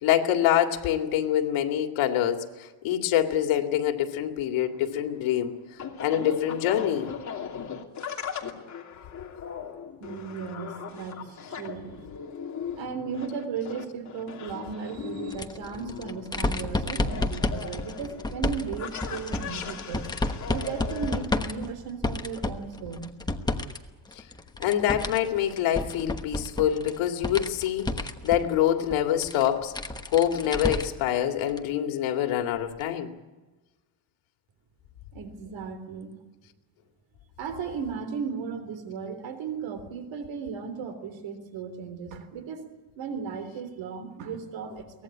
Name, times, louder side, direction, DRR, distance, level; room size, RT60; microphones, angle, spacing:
voice 1, 0.0-5.6 6.0-7.1 24.6-27.9 28.2-29.7 30.1-33.1, left 11 dB, 80° left, 5 dB, 2.4 m, -25 dB
sound 1, 4.6-21.2, left 7 dB, 35° left, 2.9 m, -39 dB
voice 2, 10.0-12.2 12.8-20.1 20.5-23.2 35.1-36.1 37.4-42.7 43.0-45.0, right 6 dB, 65° right, 10 dB, 3.5 m, -36 dB
sound 2, 15.3-23.8 24.1-31.1 31.5-31.6 32.8-32.9, left 2 dB, 10° left, 1.1 m, -31 dB
23.5 x 19.0 x 8.6 m, 1.2 s
cardioid pair, 150°, 47 cm